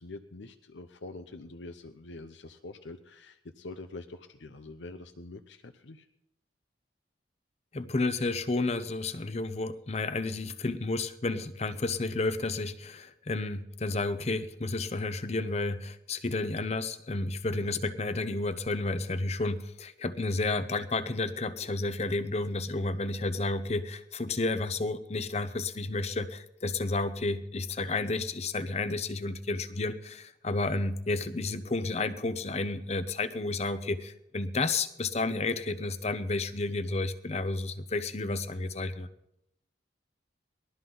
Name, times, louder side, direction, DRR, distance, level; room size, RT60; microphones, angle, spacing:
voice 1, 0.0-6.1, left 2 dB, 80° left, 9 dB, 0.8 m, -45 dB
voice 2, 7.7-39.1, left 3 dB, 35° left, 13 dB, 0.7 m, -31 dB
20.5 x 12.5 x 3.9 m, 0.83 s
head